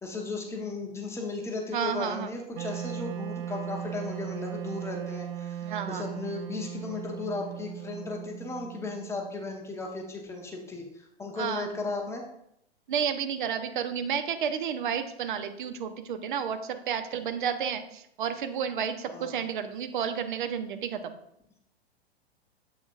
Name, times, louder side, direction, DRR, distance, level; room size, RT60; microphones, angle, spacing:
voice 1, 0.0-12.2 19.1-19.4, left 3 dB, 10° left, 1 dB, 0.8 m, -36 dB
voice 2, 1.7-2.3 5.6-6.1 11.4-11.7 12.9-21.2, right 7 dB, 50° right, 8 dB, 0.8 m, -31 dB
Wind instrument woodwind instrument, 2.5-9.5, right 11 dB, 35° right, 0.4 m, -38 dB
7.8 x 6.1 x 2.5 m, 0.75 s
figure-of-eight pair, 105°, 32 cm